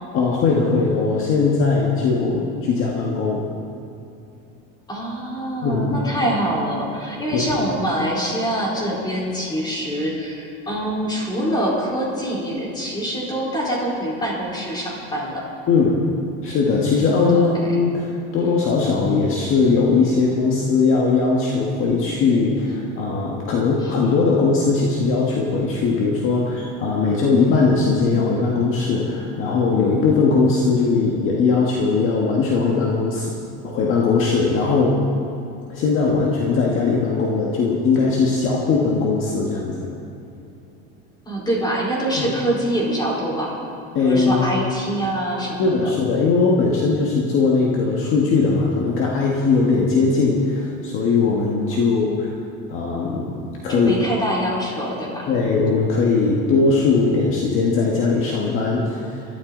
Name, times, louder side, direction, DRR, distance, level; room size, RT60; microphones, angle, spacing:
voice 1, 0.1-3.4 5.6-6.0 7.3-7.4 15.7-16.0 16.4-33.4 33.6-35.0 35.7-39.9 42.2-42.3 43.9-44.5 45.6-52.3 52.7-53.2 53.6-53.9 55.3-59.2, left 4 dB, 45° left, -2 dB, 1.8 m, -19 dB
voice 2, 4.9-15.4 17.3-17.7 23.8-23.9 41.3-43.5 44.0-45.9 51.7-52.0 53.7-55.3, right 1 dB, 15° left, -4 dB, 4.3 m, -25 dB
23.5 x 13.0 x 4.0 m, 2.8 s
cardioid pair, 145°, 30 cm